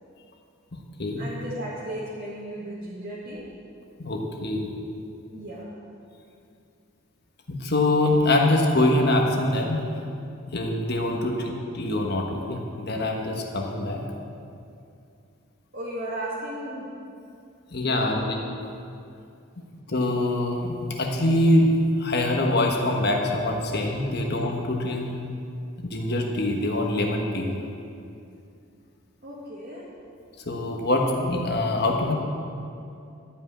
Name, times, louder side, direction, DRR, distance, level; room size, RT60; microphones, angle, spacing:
voice 1, 1.2-3.5 5.3-5.7 11.1-11.3 15.7-16.9 17.8-18.2 29.2-29.9, right 1 dB, 45° right, -9 dB, 1.8 m, -35 dB
voice 2, 4.0-4.7 7.5-9.8 10.5-14.0 17.7-18.3 19.9-25.1 25.8-27.5 30.5-32.1, left 1 dB, 50° left, 1 dB, 1.3 m, -24 dB
12.5 x 5.5 x 8.7 m, 2.6 s
head